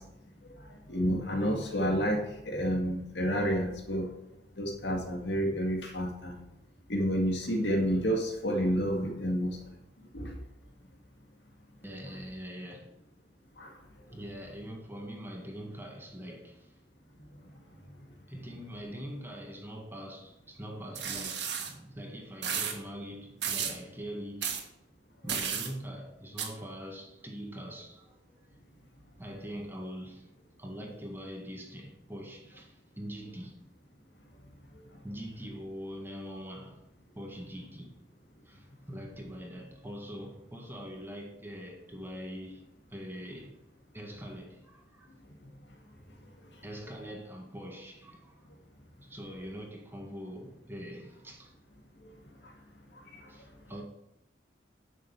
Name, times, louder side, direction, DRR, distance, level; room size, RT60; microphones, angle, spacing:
voice 1, 0.9-4.1 4.6-6.4 6.9-9.6 10.1-10.3 13.6-13.7, equal, 75° left, 2.0 m, -29 dB
voice 2, 11.8-13.1 14.1-16.7 18.3-24.7 25.2-28.5 29.2-30.3 30.6-33.6 35.0-36.8 37.1-38.0 38.4-43.6 43.9-45.1 46.6-48.4 49.0-51.5 53.3-53.8, equal, 10° right, 1.8 m, -43 dB
sound 1, 20.9-21.7 22.4-22.7 23.4-23.8 24.4-24.6 25.3-25.7 26.4-26.5, right 7 dB, 70° right, 1.8 m, -33 dB
10.5 x 6.5 x 5.8 m
head